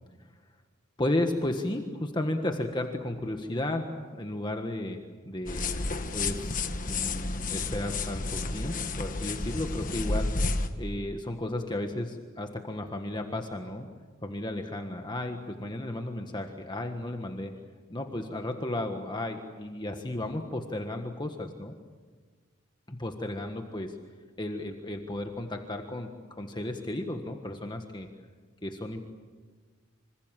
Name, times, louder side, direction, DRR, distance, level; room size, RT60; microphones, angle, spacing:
voice 1, 1.0-3.9 4.1-5.0 5.2-5.8 6.1-10.3 10.7-13.9 14.2-17.5 17.9-21.7 22.9-23.9 24.4-28.1 28.6-29.0, left 1 dB, 20° left, 4 dB, 1.5 m, -34 dB
sound 1, 5.5-10.7, left 3 dB, 40° left, 1.4 m, -31 dB
26.5 x 26.5 x 7.6 m, 1.5 s
head